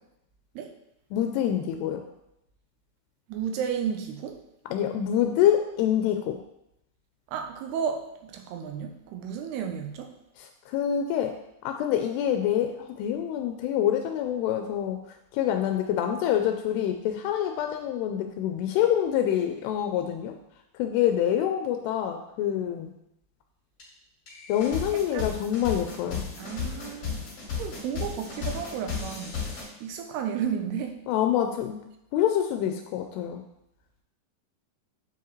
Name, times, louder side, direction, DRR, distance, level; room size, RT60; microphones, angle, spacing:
voice 1, 1.1-2.0 4.7-6.4 10.4-15.0 15.3-20.4 20.8-22.9 24.5-26.2 31.1-31.8 32.1-33.4, left 10 dB, 85° left, 5 dB, 2.6 m, -26 dB
voice 2, 3.3-4.4 7.3-10.1 24.9-25.3 26.4-27.3 27.6-31.0, right 7 dB, 85° right, 5 dB, 2.7 m, -33 dB
sound 1, 23.8-23.9 24.3-29.6, left 6 dB, 40° left, 2.8 m, -34 dB
9.5 x 4.7 x 3.0 m, 0.82 s
omnidirectional pair, 4.7 m